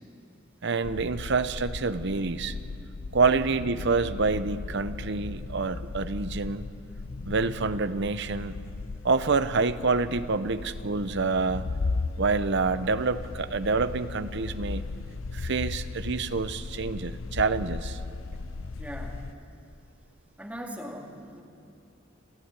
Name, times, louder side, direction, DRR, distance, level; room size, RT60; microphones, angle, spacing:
voice 1, 0.6-2.5 3.1-6.7 7.2-8.5 9.0-11.6 12.2-14.8 15.3-18.0, right 4 dB, 60° right, 12 dB, 0.8 m, -27 dB
sound 1, 0.8-19.3, left 3 dB, 75° left, 0.6 m, -36 dB
voice 2, 18.8-19.3 20.4-21.4, equal, 5° right, 0 dB, 2.3 m, -40 dB
29.5 x 12.0 x 9.7 m, 2.5 s
head